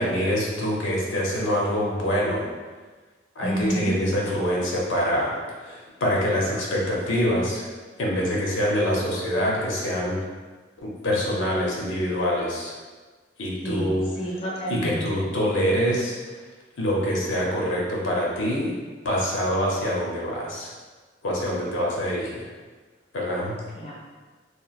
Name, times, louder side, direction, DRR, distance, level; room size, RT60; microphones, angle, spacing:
voice 1, 0.0-2.4 3.4-7.7 8.0-10.2 10.8-12.7 13.4-14.1 14.7-16.2 16.8-18.7 19.0-20.7 21.2-22.5 23.1-23.6, equal, 85° left, -3 dB, 0.6 m, -25 dB
voice 2, 3.4-3.9 13.6-15.2 23.8-23.9, equal, 30° left, -5 dB, 0.5 m, -29 dB
2.8 x 2.4 x 2.4 m, 1.4 s
head